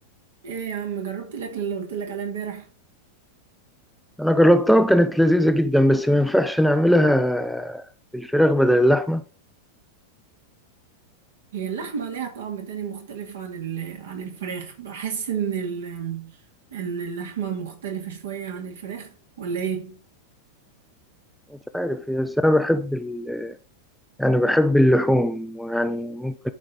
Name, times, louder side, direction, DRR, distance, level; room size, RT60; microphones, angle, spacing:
voice 1, 0.4-2.7 11.5-16.4 16.7-20.0, right 7 dB, 60° right, 2.2 m, -31 dB
voice 2, 4.2-7.8 8.1-9.2 21.7-23.6 24.2-26.5, equal, ahead, 0.5 m, -20 dB
11.5 x 4.8 x 4.0 m
figure-of-eight pair, 90°, 0 cm